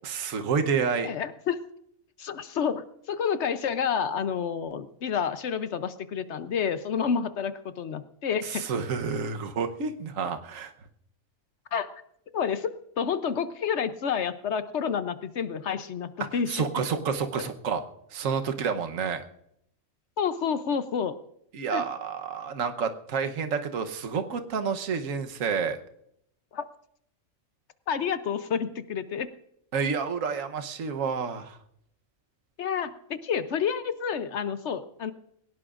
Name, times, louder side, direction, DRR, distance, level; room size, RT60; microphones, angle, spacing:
voice 1, 0.0-1.1 8.4-10.7 16.5-17.8 18.1-19.2 21.5-25.8 29.7-31.6, right 6 dB, 70° right, 7 dB, 1.4 m, -29 dB
voice 2, 1.0-1.6 2.2-8.7 11.7-11.9 12.3-12.7 13.0-16.7 20.2-21.1 21.7-21.8 26.5-26.7 27.9-29.3 32.6-35.1, left 7 dB, 60° left, 12 dB, 0.9 m, -29 dB
21.5 x 18.0 x 2.5 m, 0.73 s
omnidirectional pair, 1.4 m